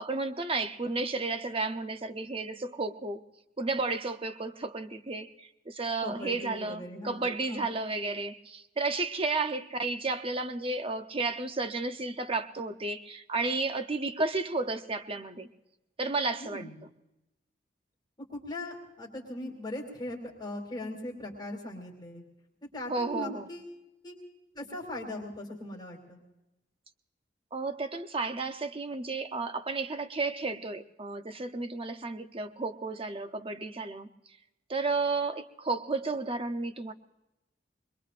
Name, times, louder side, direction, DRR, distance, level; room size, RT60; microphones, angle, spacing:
voice 1, 0.0-3.2 3.6-15.5 16.0-16.7 22.9-23.5 27.5-34.1 34.7-36.9, right 3 dB, 30° right, 8 dB, 0.8 m, -32 dB
voice 2, 6.0-7.7 16.4-16.8 18.3-22.2 22.7-23.7 24.0-24.2 24.5-26.2, left 1 dB, 25° left, -1 dB, 2.8 m, -39 dB
25.0 x 21.5 x 2.5 m, 0.94 s
head